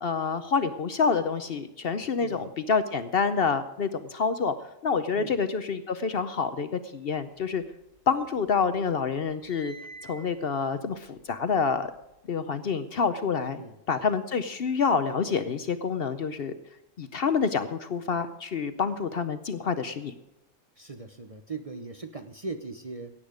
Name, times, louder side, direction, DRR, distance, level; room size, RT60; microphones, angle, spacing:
voice 1, 0.0-4.5 4.8-7.6 8.1-9.7 10.0-11.9 12.3-13.6 13.9-16.5 17.0-20.1, left 5 dB, 55° left, 11 dB, 0.8 m, -27 dB
sound 1, 7.4-8.4 8.8-12.2, right 2 dB, 85° right, 3.3 m, -50 dB
voice 2, 20.8-23.1, right 3 dB, 35° right, 7 dB, 0.7 m, -39 dB
17.0 x 8.8 x 5.0 m, 0.92 s
omnidirectional pair, 1.4 m